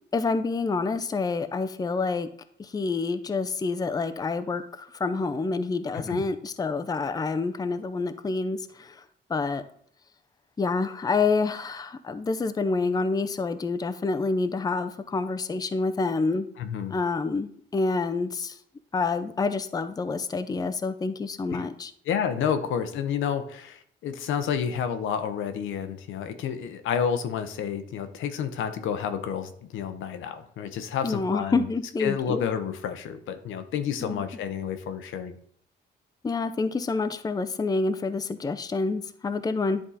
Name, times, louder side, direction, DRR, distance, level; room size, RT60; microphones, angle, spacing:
voice 1, 0.1-2.3 2.6-9.0 9.3-9.6 10.6-16.5 16.9-18.6 18.9-21.9 31.0-32.4 34.0-34.2 36.2-39.8, left 4 dB, 20° left, 10 dB, 0.5 m, -27 dB
voice 2, 5.9-6.3 16.6-16.9 21.5-21.6 22.0-31.7 32.0-35.4, left 8 dB, 80° left, 9 dB, 0.8 m, -30 dB
10.0 x 3.7 x 4.1 m, 0.63 s
cardioid pair, 90°, 20 cm